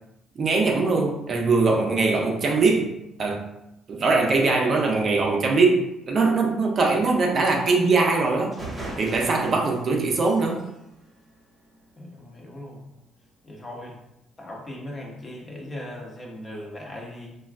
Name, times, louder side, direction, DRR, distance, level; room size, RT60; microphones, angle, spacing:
voice 1, 0.4-2.9 3.2-3.4 3.9-8.5 9.0-10.6, right 3 dB, 45° right, 0 dB, 0.5 m, -21 dB
sound 1, 8.1-8.2 8.5-12.0, right 2 dB, 20° right, 0.9 m, -40 dB
voice 2, 12.0-12.9 13.4-14.0 14.4-17.4, left 1 dB, 25° left, -1 dB, 0.7 m, -38 dB
3.2 x 2.3 x 2.4 m, 0.86 s
cardioid pair, 110°, 0 cm